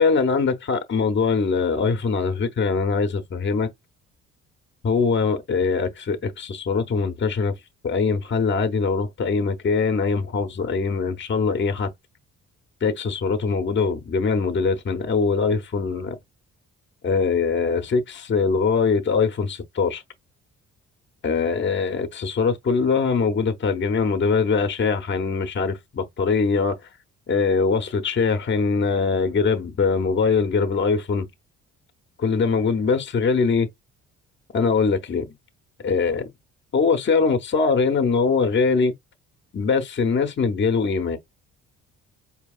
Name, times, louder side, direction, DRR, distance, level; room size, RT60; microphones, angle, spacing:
voice 1, 0.0-3.7 4.8-7.5 7.8-11.9 12.8-16.2 17.0-20.0 21.2-26.8 27.3-31.3 32.2-33.7 34.5-35.3 35.8-36.3 36.7-38.9 39.5-41.2, left 5 dB, 40° left, 0.9 m, -22 dB
4.6 x 2.9 x 2.4 m
cardioid pair, 90°, 30 cm